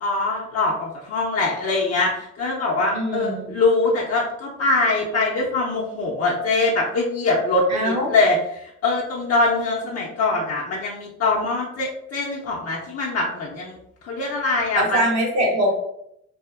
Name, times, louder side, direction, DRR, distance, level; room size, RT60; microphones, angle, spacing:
voice 1, 0.0-13.8 14.0-15.0, left 3 dB, 55° left, -4 dB, 0.6 m, -23 dB
voice 2, 2.9-3.5 7.7-8.1 14.7-15.7, right 1 dB, 60° right, -2 dB, 1.0 m, -22 dB
2.7 x 2.4 x 2.4 m, 0.76 s
cardioid pair, 90°, 30 cm